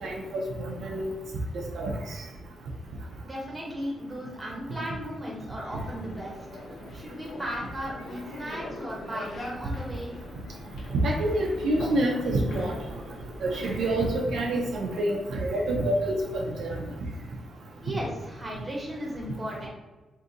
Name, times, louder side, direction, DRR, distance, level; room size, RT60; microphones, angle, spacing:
voice 1, 0.0-1.1 1.7-1.9 10.9-12.7 13.4-16.8, right 1 dB, 70° right, 0 dB, 0.5 m, -27 dB
voice 2, 3.2-6.4 6.9-10.1 17.8-19.7, equal, 15° right, -3 dB, 0.9 m, -36 dB
sound 1, 5.7-14.1, left 2 dB, 65° left, 0.6 m, -42 dB
2.6 x 2.5 x 3.8 m, 1.2 s
wide cardioid pair, 160°, 0 cm